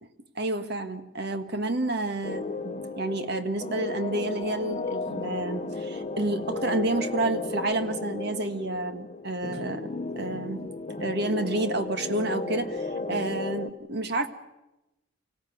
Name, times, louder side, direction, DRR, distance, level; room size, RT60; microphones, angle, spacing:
voice 1, 0.3-10.6 11.0-14.3, right 2 dB, 60° right, 8 dB, 1.6 m, -30 dB
sound 1, 2.2-13.7, left 3 dB, 35° left, 0.9 m, -34 dB
25.0 x 16.5 x 9.2 m, 0.98 s
head